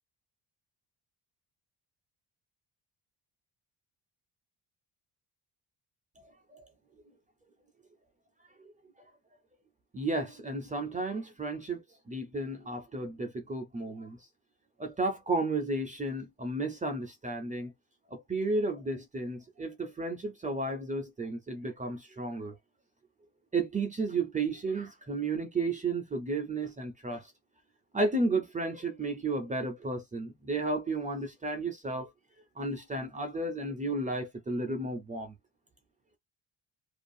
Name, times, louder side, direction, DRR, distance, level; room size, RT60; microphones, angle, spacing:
voice 1, 9.9-14.2 14.8-17.7 18.1-22.5 23.5-27.3 27.9-32.1 32.6-35.3, right 2 dB, 20° right, 0.5 m, -33 dB
2.4 x 2.3 x 2.6 m
cardioid pair, 170°, 43 cm